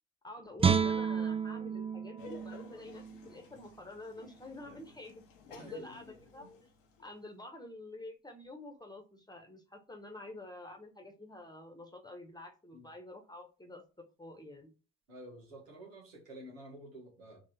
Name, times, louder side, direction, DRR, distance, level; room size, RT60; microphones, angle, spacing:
voice 1, 0.2-6.5 7.0-14.7, left 1 dB, 10° left, 4 dB, 1.1 m, -49 dB
Guitar, 0.6-3.8 4.2-4.3, right 6 dB, 15° right, 0.3 m, -32 dB
Laughter, 2.2-7.3, left 4 dB, 75° left, 0.9 m, -52 dB
voice 2, 5.4-6.1 12.7-12.9 15.1-17.4, right 1 dB, 85° right, -3 dB, 1.5 m, -50 dB
3.7 x 3.1 x 4.2 m, 0.33 s
figure-of-eight pair, 45°, 39 cm